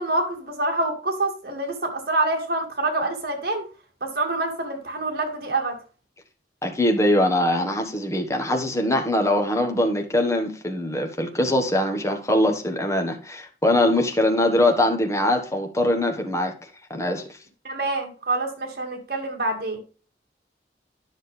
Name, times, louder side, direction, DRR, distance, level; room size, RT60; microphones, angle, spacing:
voice 1, 0.0-3.6 4.0-5.8 17.6-19.8, right 2 dB, 60° right, 3 dB, 2.2 m, -26 dB
voice 2, 6.6-16.5 16.9-17.4, left 1 dB, 15° left, 4 dB, 1.4 m, -22 dB
10.5 x 6.4 x 3.4 m, 0.37 s
head